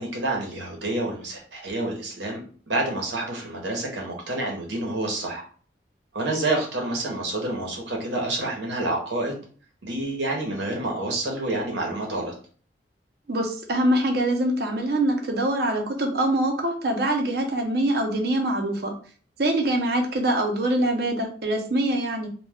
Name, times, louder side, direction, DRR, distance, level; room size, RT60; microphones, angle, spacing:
voice 1, 0.0-2.4 2.7-5.4 6.1-9.4 9.8-12.3, right 2 dB, 90° right, 0 dB, 0.9 m, -28 dB
voice 2, 13.3-18.9 19.4-22.3, right 1 dB, 60° right, 4 dB, 0.6 m, -24 dB
2.3 x 2.3 x 3.4 m, 0.43 s
head